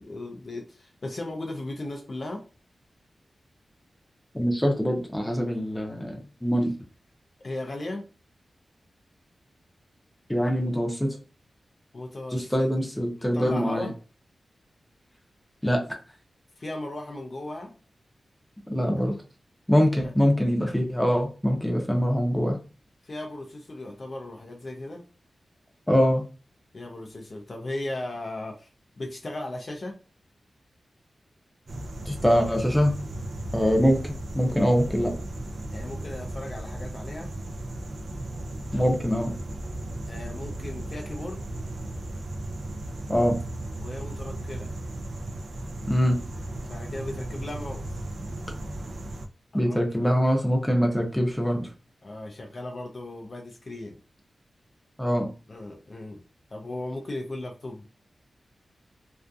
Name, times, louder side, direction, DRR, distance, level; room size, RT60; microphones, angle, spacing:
voice 1, 0.0-2.4 7.4-8.1 11.9-12.7 13.1-13.9 16.6-17.7 20.0-20.1 23.0-25.0 26.7-28.7 29.0-30.0 35.7-37.3 40.0-41.4 43.8-44.7 46.7-48.0 49.5-49.8 52.0-54.0 55.5-56.2 56.5-57.9, left 1 dB, 45° left, 3 dB, 0.4 m, -36 dB
voice 2, 4.3-6.7 10.3-11.2 12.3-13.9 15.6-15.8 18.7-19.2 19.7-22.6 25.9-26.2 32.1-32.9 33.5-35.1 38.7-39.3 43.1-43.4 45.9-46.2 49.5-51.7 55.0-55.3, equal, 5° left, 1 dB, 0.6 m, -23 dB
sound 1, 31.7-49.3, right 1 dB, 70° right, 0.4 m, -36 dB
2.5 x 2.4 x 2.3 m, 0.34 s
wide cardioid pair, 95°, 0 cm